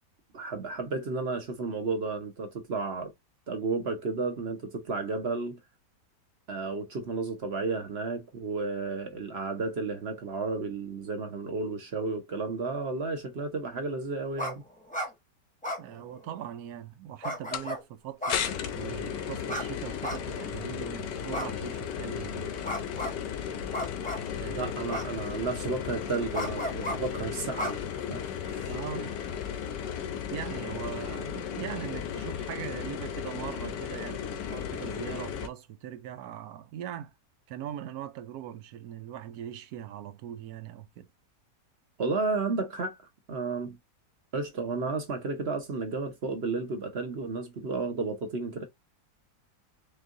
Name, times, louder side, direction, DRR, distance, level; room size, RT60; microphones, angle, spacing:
voice 1, 0.3-3.1 3.5-5.6 6.5-14.6 24.5-27.8 28.1-28.7 42.0-43.0 43.3-43.8 44.3-48.6, right 3 dB, 45° right, 0.9 m, -32 dB
sound 1, 14.4-14.5 14.8-15.1 15.6-16.4 17.2-17.8 18.2-18.9 19.5-19.6 20.0-20.6 21.3-22.0 22.6-23.2 23.7-24.3 24.9-25.5 26.3-27.0 27.6-28.3, left 1 dB, 5° left, 0.7 m, -34 dB
voice 2, 15.8-22.6 24.4-24.7 28.7-29.2 30.3-37.1 37.5-41.1, right 10 dB, 75° right, 1.0 m, -40 dB
sound 2, 17.5-17.7 18.3-35.5, left 8 dB, 90° left, 1.4 m, -35 dB
4.6 x 3.3 x 2.5 m
omnidirectional pair, 1.8 m